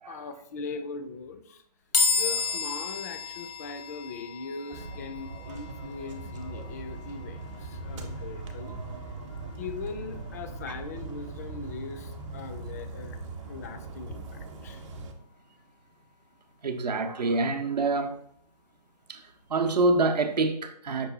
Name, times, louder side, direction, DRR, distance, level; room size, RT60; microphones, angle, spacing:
voice 1, 0.1-1.6 2.1-8.8 9.3-13.2 13.5-14.9, left 4 dB, 25° left, 0.3 m, -40 dB
sound 1, 1.9-15.3, left 4 dB, 85° left, 1.0 m, -35 dB
sound 2, 4.7-15.1, right 3 dB, 45° right, 0.7 m, -40 dB
voice 2, 16.6-18.1 19.1-21.1, right 3 dB, 80° right, 0.7 m, -26 dB
5.3 x 2.3 x 3.9 m
figure-of-eight pair, 140°, 21 cm